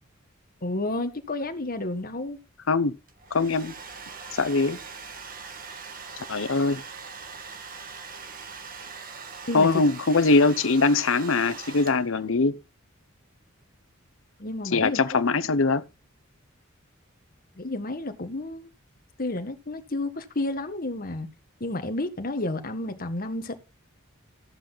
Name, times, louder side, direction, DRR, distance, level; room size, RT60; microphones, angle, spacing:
voice 1, 0.6-2.4 9.5-9.8 14.4-15.3 17.6-18.7 19.2-21.3 21.6-23.6, left 2 dB, 45° left, 1.6 m, -31 dB
Domestic sounds home sounds, 3.1-12.3, right 5 dB, 45° right, 1.6 m, -41 dB
voice 2, 3.3-3.7 4.4-4.8 6.3-6.8 9.5-12.5 14.7-15.8, left 3 dB, 70° left, 0.8 m, -22 dB
14.0 x 7.8 x 4.0 m
head